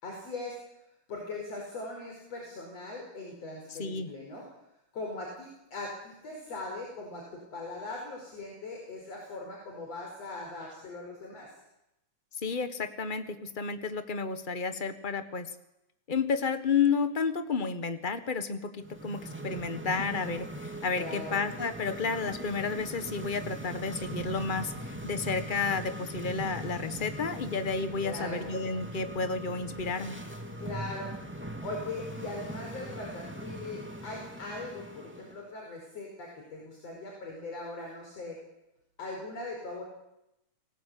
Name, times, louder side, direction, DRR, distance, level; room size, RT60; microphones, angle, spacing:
voice 1, 0.0-0.6 1.1-4.5 4.9-11.5 20.9-21.4 28.0-28.5 30.6-31.1 31.6-38.4 39.0-39.8, left 2 dB, 55° left, 0 dB, 6.1 m, -40 dB
voice 2, 3.8-4.1 12.4-15.5 16.1-30.2, left 5 dB, 30° left, 10 dB, 0.8 m, -31 dB
sound 1, 18.8-35.4, right 1 dB, 5° right, 2.4 m, -41 dB
30.0 x 20.0 x 8.6 m, 0.87 s
omnidirectional pair, 3.5 m